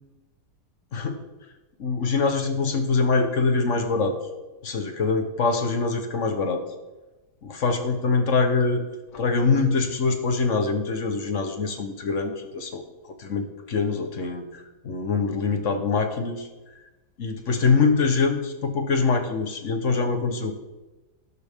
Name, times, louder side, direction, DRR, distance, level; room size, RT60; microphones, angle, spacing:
voice 1, 1.8-4.2 4.6-6.6 7.4-8.9 9.1-12.8 13.2-16.5 17.2-20.5, left 4 dB, 50° left, 7 dB, 1.2 m, -24 dB
12.0 x 11.0 x 3.6 m, 1.1 s
omnidirectional pair, 1.9 m